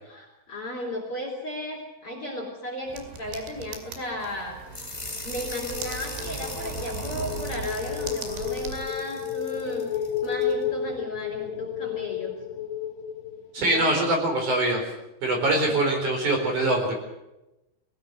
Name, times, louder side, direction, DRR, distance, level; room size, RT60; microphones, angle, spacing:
voice 1, 0.0-4.6 5.2-9.9 10.2-12.4 13.6-14.1 15.7-15.8, left 1 dB, 30° left, -1 dB, 4.0 m, -34 dB
sound 1, 2.9-8.9, right 6 dB, 80° right, 4.7 m, -38 dB
sound 2, 4.7-10.5, left 2 dB, 15° left, 1.2 m, -40 dB
sound 3, 5.1-14.0, left 8 dB, 70° left, 3.2 m, -33 dB
voice 2, 13.5-14.8 15.2-16.9, right 2 dB, 40° right, 2 dB, 5.4 m, -23 dB
22.0 x 18.5 x 8.1 m, 0.97 s
omnidirectional pair, 5.4 m